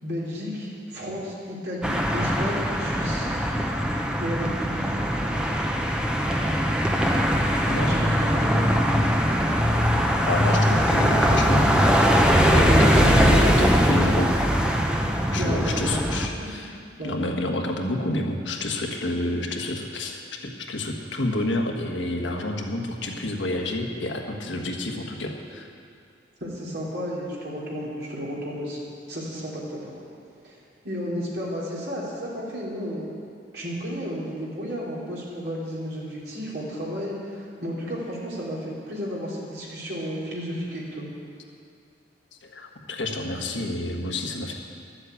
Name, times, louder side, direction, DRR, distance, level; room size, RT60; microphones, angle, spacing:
voice 1, 0.0-3.3 4.2-5.0 7.9-8.6 15.3-16.5 17.0-17.1 26.4-28.8 29.1-29.9 30.4-30.6 30.8-33.1 33.5-41.1, equal, 55° right, -5 dB, 3.2 m, -32 dB
sound 1, 1.8-16.3, equal, 5° right, 0.7 m, -21 dB
voice 2, 10.2-11.9 12.5-14.3 15.3-16.7 17.0-25.7 42.4-44.5, left 1 dB, 75° left, 2 dB, 1.4 m, -29 dB
12.0 x 7.8 x 8.2 m, 2.3 s
head